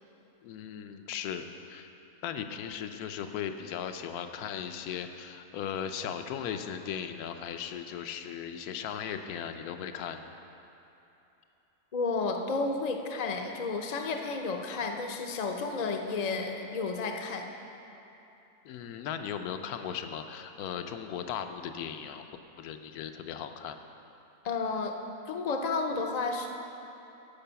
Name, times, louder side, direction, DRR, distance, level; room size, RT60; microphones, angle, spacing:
voice 1, 0.4-1.9 2.2-10.3 18.6-22.2 22.6-23.8, left 8 dB, 75° left, 7 dB, 1.1 m, -37 dB
voice 2, 11.9-17.5 24.4-25.0 25.3-26.5, left 4 dB, 45° left, 3 dB, 0.5 m, -32 dB
12.5 x 5.4 x 6.9 m, 3.0 s
omnidirectional pair, 1.7 m